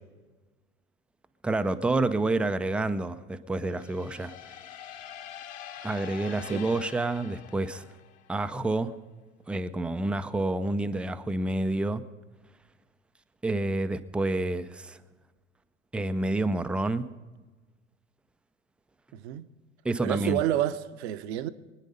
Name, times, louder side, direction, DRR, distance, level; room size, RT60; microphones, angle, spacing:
voice 1, 1.4-4.6 5.8-7.9 8.3-8.9 9.5-12.0 13.4-15.0 15.9-17.1 19.8-20.4, right 2 dB, 5° right, 0.4 m, -28 dB
sound 1, 3.7-8.4, left 10 dB, 50° left, 1.5 m, -45 dB
voice 2, 6.4-6.7 19.1-19.5 20.0-21.5, right 12 dB, 55° right, 0.8 m, -29 dB
23.0 x 9.8 x 5.4 m
figure-of-eight pair, 80°, 38 cm